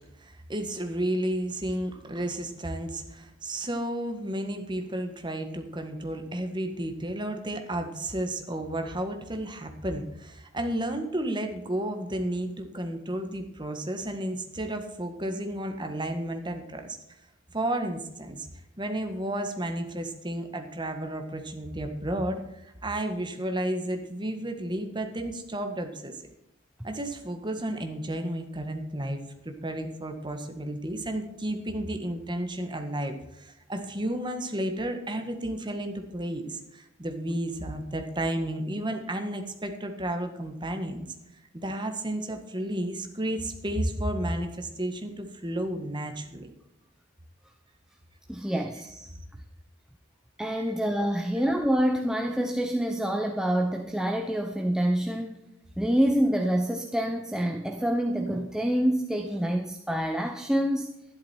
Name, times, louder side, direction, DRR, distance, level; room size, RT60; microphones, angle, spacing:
voice 1, 0.2-17.0 17.5-18.5 18.8-26.2 26.8-29.2 29.4-41.1 41.5-46.5 50.6-50.8, right 1 dB, 25° right, 6 dB, 1.6 m, -32 dB
voice 2, 48.3-49.1 50.4-55.4 55.8-60.9, equal, 5° right, 3 dB, 0.8 m, -27 dB
12.5 x 11.5 x 4.4 m, 0.87 s
head